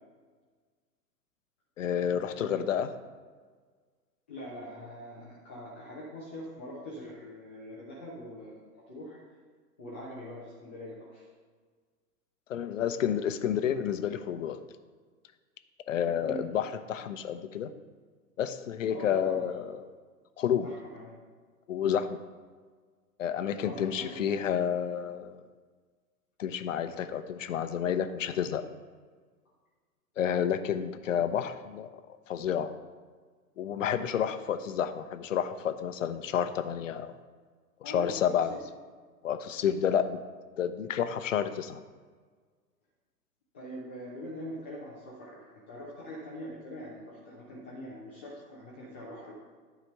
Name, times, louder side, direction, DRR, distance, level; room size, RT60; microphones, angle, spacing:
voice 1, 1.8-2.9 12.5-14.6 15.9-17.7 18.4-19.8 20.4-20.7 21.7-22.2 23.2-25.4 26.4-28.6 30.2-31.9 32.3-32.7 33.6-37.1 37.8-38.6 39.2-40.2 40.6-41.8, left 8 dB, 50° left, 10 dB, 0.7 m, -30 dB
voice 2, 2.3-2.8 4.3-8.6 8.9-9.2 9.8-11.3 16.2-16.4 18.9-19.5 20.6-21.2 23.6-24.2 37.8-38.6 43.5-49.3, equal, 10° left, -8 dB, 0.3 m, -43 dB
10.0 x 5.0 x 5.7 m, 1.5 s
figure-of-eight pair, 110°, 49 cm